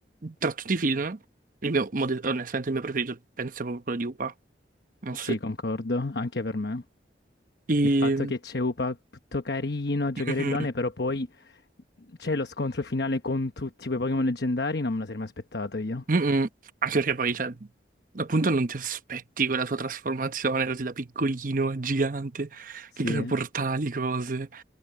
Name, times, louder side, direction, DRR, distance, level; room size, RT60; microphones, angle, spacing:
voice 1, 0.2-1.2 1.6-4.3 5.0-5.4 7.7-8.3 10.3-10.5 16.1-16.5 16.8-17.6 18.1-24.6, right 3 dB, 45° right, 0.9 m, -27 dB
voice 2, 5.1-6.8 7.8-9.0 9.3-11.6 12.2-16.0 23.0-23.3, left 2 dB, 60° left, 1.1 m, -29 dB
head